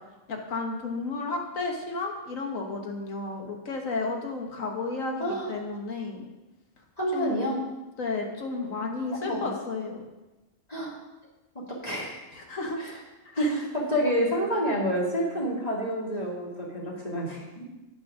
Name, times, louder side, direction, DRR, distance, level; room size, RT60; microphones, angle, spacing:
voice 1, 0.3-6.2 7.1-7.4 8.0-10.0 12.4-12.8 13.3-13.5, left 3 dB, 85° left, 2 dB, 1.7 m, -32 dB
voice 2, 5.2-5.5 7.0-7.6 9.2-9.5 10.7-10.9 11.8-12.2 12.8-13.0 13.4-17.6, equal, 30° left, -6 dB, 2.4 m, -28 dB
9.1 x 6.2 x 6.2 m, 1.1 s
omnidirectional pair, 1.3 m